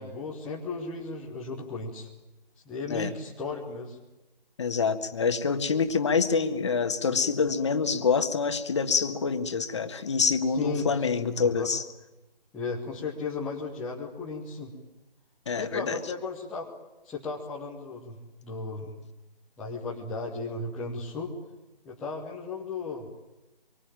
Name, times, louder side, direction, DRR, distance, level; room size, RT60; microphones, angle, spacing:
voice 1, 0.0-2.1 2.6-4.0 10.5-11.7 12.5-14.8 15.6-16.7 17.0-18.9 19.6-21.4 21.8-23.1, left 3 dB, ahead, -5 dB, 0.9 m, -35 dB
voice 2, 4.6-11.8 15.5-16.0, left 5 dB, 30° left, 9 dB, 1.7 m, -26 dB
26.0 x 24.5 x 8.9 m, 0.98 s
figure-of-eight pair, 155°, 29 cm